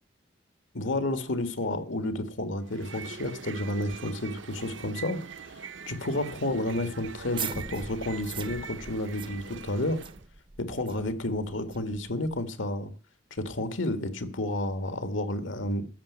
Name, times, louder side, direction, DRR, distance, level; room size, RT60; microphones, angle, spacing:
voice 1, 0.7-5.2 5.9-10.0 10.6-12.9 13.4-15.9, left 1 dB, 85° left, 11 dB, 1.7 m, -31 dB
sound 1, 2.6-10.3, right 6 dB, 70° right, 0.8 m, -43 dB
sound 2, 7.2-12.4, right 6 dB, 25° right, 0.5 m, -41 dB
14.5 x 6.0 x 9.4 m, 0.40 s
head